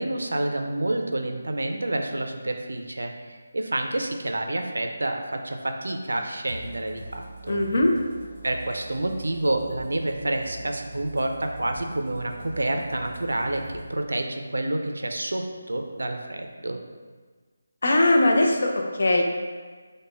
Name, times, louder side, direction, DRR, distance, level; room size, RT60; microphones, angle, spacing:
voice 1, 0.0-7.6 8.4-13.6 13.9-16.8, right 1 dB, 75° right, 4 dB, 0.4 m, -28 dB
sound 1, 6.5-13.9, right 2 dB, 35° right, 0.7 m, -42 dB
voice 2, 7.5-7.9 17.8-19.2, left 1 dB, 55° left, 1 dB, 0.5 m, -20 dB
4.9 x 2.1 x 2.4 m, 1.5 s
figure-of-eight pair, 155°, 0 cm